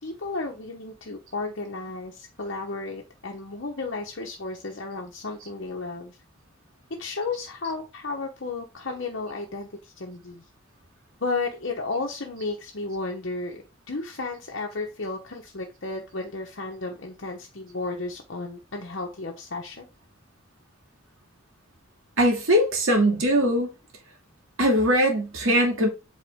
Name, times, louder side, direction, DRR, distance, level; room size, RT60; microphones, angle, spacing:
voice 1, 0.0-6.2 6.9-10.4 11.2-19.8, left 3 dB, 65° left, 1.0 m, -33 dB
voice 2, 22.2-23.7 24.6-25.9, equal, 80° right, 2.4 m, -21 dB
8.1 x 4.2 x 3.6 m
head